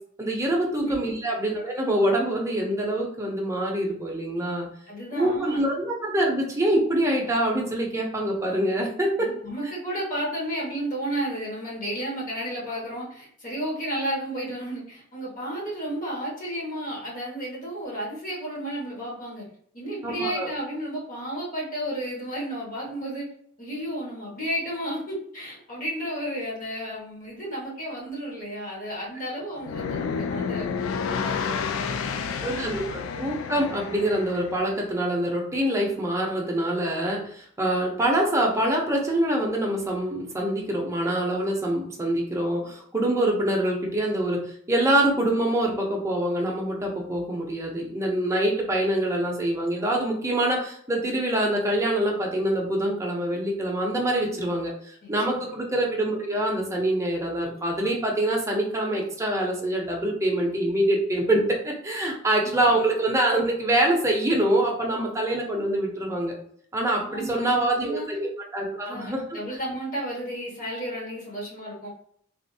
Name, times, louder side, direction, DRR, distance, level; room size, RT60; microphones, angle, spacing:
voice 1, 0.2-4.7 5.1-9.3 20.0-20.5 32.4-66.3 66.7-69.4, right 1 dB, 15° right, 0 dB, 0.7 m, -25 dB
voice 2, 4.9-5.6 9.2-19.5 19.7-23.2 23.6-30.7 31.2-32.7 55.0-55.5 67.1-68.1 68.8-71.9, right 1 dB, 45° left, -5 dB, 1.3 m, -32 dB
sound 1, 29.6-34.7, left 6 dB, 85° left, 0.3 m, -30 dB
3.4 x 2.5 x 2.7 m, 0.63 s
head